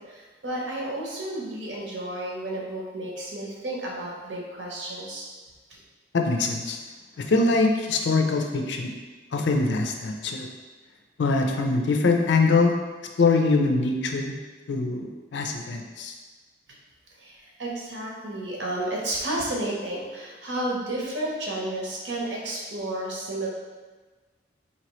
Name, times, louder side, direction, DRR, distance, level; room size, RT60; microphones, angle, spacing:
voice 1, 0.0-5.3 5.7-5.8 17.2-23.5, right 1 dB, 70° right, -3 dB, 0.9 m, -32 dB
voice 2, 6.1-6.8 7.2-8.9 9.3-10.5 11.2-12.7 13.2-14.4 14.7-16.2, left 3 dB, 70° left, 3 dB, 0.4 m, -23 dB
4.2 x 2.9 x 3.1 m, 1.3 s
head